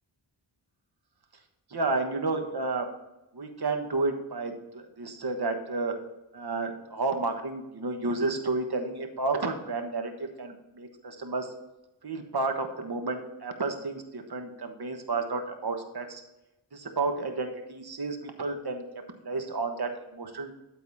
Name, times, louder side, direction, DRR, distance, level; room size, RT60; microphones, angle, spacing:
voice 1, 1.7-2.9 3.3-6.0 6.3-11.5 12.0-16.2 16.7-18.8 19.2-20.5, right 3 dB, 55° right, 5 dB, 1.4 m, -31 dB
12.0 x 4.2 x 4.1 m, 0.96 s
cardioid pair, 55°, 47 cm